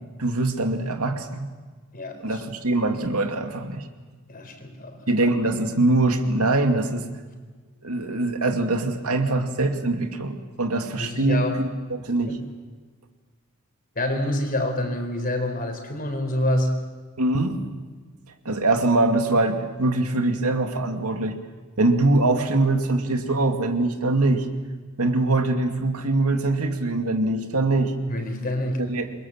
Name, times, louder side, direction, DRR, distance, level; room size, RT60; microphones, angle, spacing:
voice 1, 0.2-1.5 2.2-3.8 5.1-7.1 7.8-12.4 17.2-17.6 18.5-21.4 21.8-24.5 25.0-27.9 28.8-29.1, right 2 dB, 90° right, 5 dB, 2.4 m, -23 dB
voice 2, 1.9-2.4 4.3-5.1 10.9-11.7 12.2-12.5 14.0-16.8 28.1-28.9, left 1 dB, 40° left, 6 dB, 4.2 m, -27 dB
28.0 x 23.0 x 7.4 m, 1.4 s
head